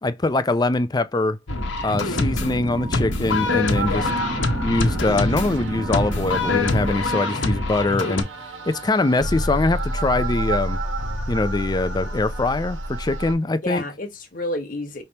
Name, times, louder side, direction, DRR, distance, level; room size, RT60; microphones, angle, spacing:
voice 1, 0.0-1.4 1.8-4.0 4.6-8.3 8.7-10.8 11.3-13.8, left 2 dB, 20° left, 0.4 m, -23 dB
sound 1, 1.5-8.2, left 3 dB, 75° left, 1.1 m, -25 dB
sound 2, 1.9-6.9, right 2 dB, 40° right, 0.6 m, -31 dB
sound 3, 3.7-13.3, right 1 dB, 85° right, 1.5 m, -30 dB
voice 2, 3.9-4.4 13.6-15.0, left 1 dB, 45° left, 1.3 m, -30 dB
5.6 x 3.3 x 2.8 m
head